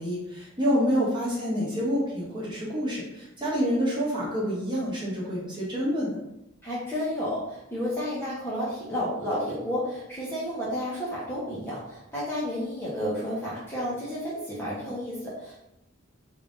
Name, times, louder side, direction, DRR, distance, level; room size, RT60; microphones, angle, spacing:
voice 1, 0.0-6.2, equal, 20° right, -6 dB, 1.1 m, -27 dB
voice 2, 0.6-0.9 6.6-15.6, equal, 10° left, -8 dB, 0.7 m, -31 dB
3.3 x 2.5 x 3.5 m, 0.85 s
head